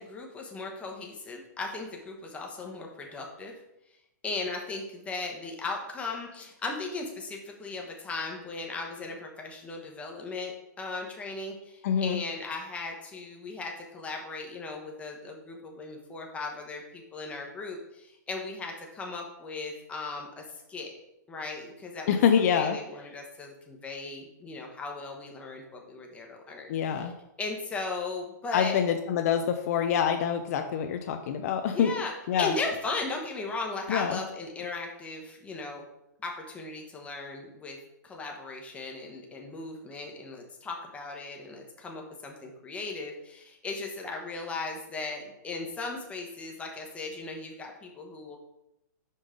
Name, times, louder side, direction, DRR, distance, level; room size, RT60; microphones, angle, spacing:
voice 1, 0.0-3.6 4.2-20.4 20.7-20.9 21.3-22.2 22.5-27.1 27.4-28.8 31.6-32.1 32.4-35.8 36.2-37.8 38.0-48.4, left 3 dB, 10° left, 1 dB, 1.0 m, -37 dB
voice 2, 11.8-12.2 22.1-22.8 26.7-27.1 28.5-31.9 32.3-32.5 33.9-34.2, left 8 dB, 50° left, 6 dB, 0.5 m, -26 dB
5.3 x 5.2 x 3.7 m, 0.87 s
hypercardioid pair, 140°, 10 cm